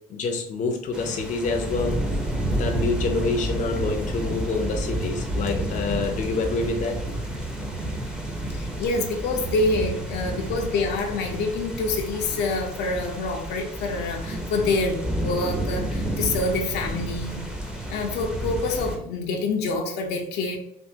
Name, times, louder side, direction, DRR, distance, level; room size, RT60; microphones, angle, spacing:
voice 1, 0.1-2.1 2.5-7.0, left 4 dB, 45° left, 3 dB, 0.6 m, -27 dB
sound 1, 0.9-19.0, right 1 dB, 5° right, 0.6 m, -30 dB
voice 2, 8.5-17.4 17.9-20.6, left 3 dB, 80° left, 1 dB, 0.7 m, -26 dB
3.5 x 2.5 x 2.7 m, 0.76 s
cardioid pair, 110°, 17 cm